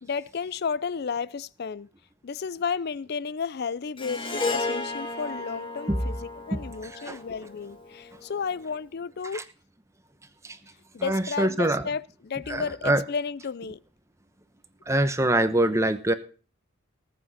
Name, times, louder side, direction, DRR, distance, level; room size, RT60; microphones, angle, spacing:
voice 1, 0.0-1.9 2.2-6.2 6.5-9.4 10.9-13.8, left 5 dB, 55° left, 0.5 m, -32 dB
Harp, 4.0-8.4, left 3 dB, 25° left, 1.8 m, -34 dB
voice 2, 6.5-7.2 9.3-9.4 10.4-10.6 11.0-11.9 12.5-13.0 14.9-16.1, right 1 dB, 15° right, 0.9 m, -25 dB
19.0 x 8.4 x 4.2 m
head